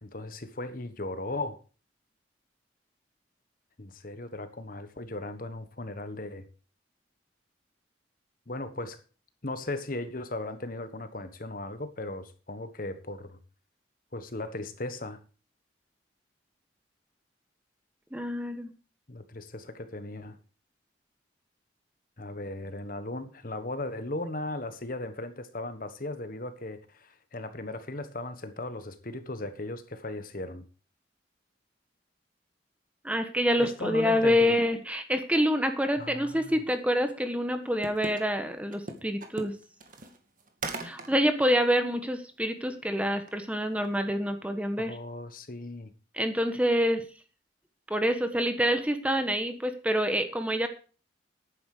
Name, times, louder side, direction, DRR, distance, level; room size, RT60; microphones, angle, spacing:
voice 1, 0.0-1.6 3.8-6.5 8.5-9.0 9.4-13.4 14.1-15.2 19.1-20.4 22.2-30.7 33.6-34.6 36.0-36.5 44.8-45.9, left 2 dB, 45° left, 10 dB, 1.3 m, -37 dB
voice 2, 18.1-18.7 33.0-39.5 40.8-45.0 46.1-47.0 47.9-50.7, equal, 5° right, 7 dB, 1.2 m, -27 dB
sound 1, 37.8-38.2 38.7-41.1 41.5-41.6 43.3-43.5 43.8-44.0, right 2 dB, 45° right, 2.0 m, -38 dB
11.5 x 9.8 x 5.0 m, 0.36 s
head